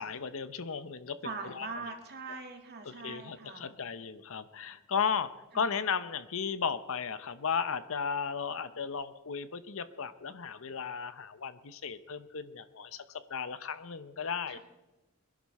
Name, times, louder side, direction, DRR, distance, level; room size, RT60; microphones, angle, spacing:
voice 1, 0.0-1.2 1.4-1.7 2.9-5.3 5.5-14.6, left 6 dB, 70° left, 13 dB, 0.8 m, -35 dB
voice 2, 1.2-3.7 5.5-5.7 14.5-14.6, right 4 dB, 50° right, 4 dB, 2.2 m, -42 dB
22.0 x 11.0 x 4.2 m, 1.1 s
head